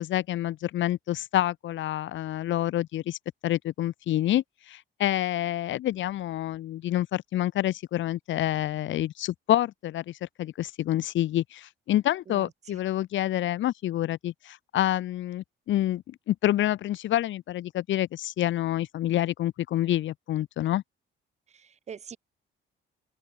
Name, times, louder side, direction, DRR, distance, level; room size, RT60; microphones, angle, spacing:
voice 1, 0.0-20.8, left 13 dB, 65° left, 2.4 m, -28 dB
voice 2, 12.3-12.8 21.5-22.2, right 7 dB, 35° right, 3.2 m, -44 dB
open air
cardioid pair, 175°, 21 cm